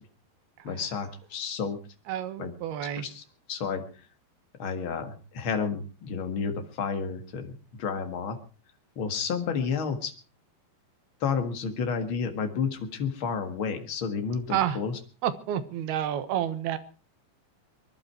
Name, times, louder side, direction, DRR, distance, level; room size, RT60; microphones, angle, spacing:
voice 1, 0.6-1.8 2.4-2.5 3.0-3.2 3.5-3.8 4.6-8.4 8.9-10.1 11.2-14.9, left 6 dB, 50° left, 6 dB, 1.6 m, -31 dB
voice 2, 2.1-3.1 14.5-14.8 15.2-16.8, right 11 dB, 70° right, 11 dB, 3.0 m, -29 dB
23.0 x 11.5 x 4.7 m, 0.36 s
omnidirectional pair, 5.0 m